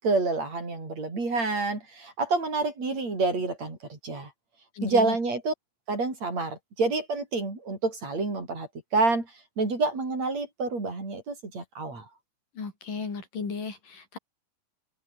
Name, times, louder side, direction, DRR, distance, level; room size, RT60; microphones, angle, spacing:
voice 1, 0.0-4.3 4.8-5.5 5.9-12.1, right 3 dB, 55° right, 8.0 m, -28 dB
voice 2, 4.8-5.2 12.6-14.2, left 5 dB, 90° left, 7.0 m, -35 dB
omnidirectional pair, 3.7 m